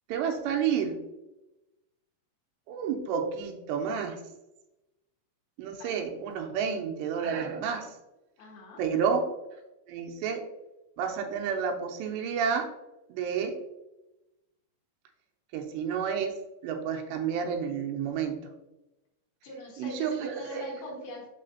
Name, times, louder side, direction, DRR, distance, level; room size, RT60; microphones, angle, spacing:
voice 1, 0.1-1.0 2.7-4.2 5.6-7.9 8.8-9.3 9.9-10.5 11.0-12.7 13.1-13.6 15.5-16.3 16.6-18.5 19.8-20.7, right 7 dB, 85° right, 3 dB, 2.9 m, -30 dB
voice 2, 8.4-8.8 19.4-21.3, left 1 dB, 65° left, -1 dB, 3.0 m, -43 dB
6.6 x 6.5 x 2.7 m, 0.97 s
omnidirectional pair, 5.0 m